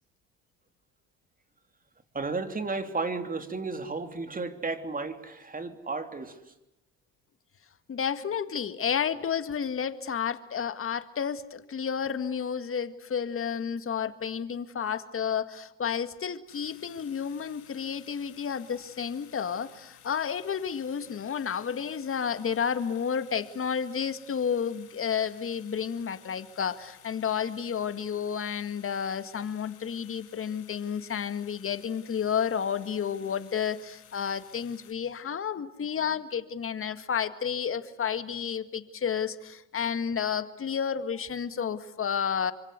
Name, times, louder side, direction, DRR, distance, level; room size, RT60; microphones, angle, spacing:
voice 1, 2.1-6.5, right 3 dB, 25° right, 3.3 m, -33 dB
voice 2, 7.9-42.5, left 7 dB, 40° left, 2.0 m, -31 dB
sound 1, 16.5-34.9, left 10 dB, 65° left, 4.2 m, -55 dB
27.5 x 25.0 x 8.3 m
hypercardioid pair, 65°, 33 cm